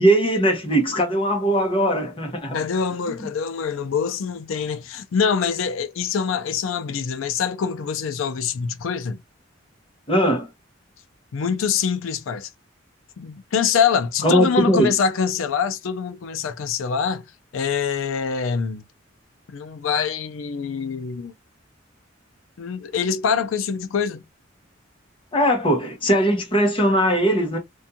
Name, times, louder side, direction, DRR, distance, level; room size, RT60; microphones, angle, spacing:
voice 1, 0.0-2.6 3.1-3.2 10.1-10.5 14.2-14.9 25.3-27.6, right 1 dB, 25° left, 0.8 m, -20 dB
voice 2, 2.5-9.2 11.3-12.5 13.2-17.3 17.5-18.8 19.5-21.3 22.6-24.2, left 6 dB, 80° left, 0.4 m, -24 dB
2.5 x 2.3 x 2.7 m
head